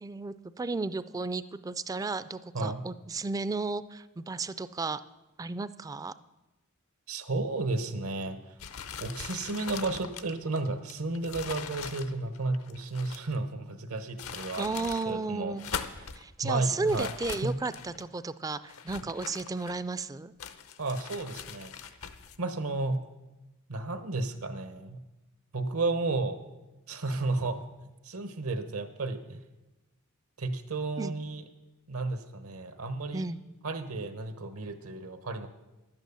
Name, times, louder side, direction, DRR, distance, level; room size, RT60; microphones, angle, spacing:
voice 1, 0.0-5.0 5.4-6.1 14.6-15.6 16.1-20.3 31.0-31.1 33.1-33.4, right 3 dB, 15° right, 15 dB, 0.3 m, -33 dB
voice 2, 7.1-8.4 9.0-15.5 16.4-17.1 17.4-17.5 20.8-21.7 22.4-23.0 23.7-25.0 25.5-26.4 26.9-27.7 28.1-29.4 30.4-31.4 31.9-33.2 33.6-35.5, right 3 dB, 80° right, 10 dB, 1.1 m, -32 dB
sound 1, 8.6-13.4 14.0-15.1 15.5-16.2 16.9-18.1 18.7-20.0 20.4-22.4, left 7 dB, 80° left, 0.7 m, -41 dB
11.0 x 9.1 x 6.9 m, 1.0 s
head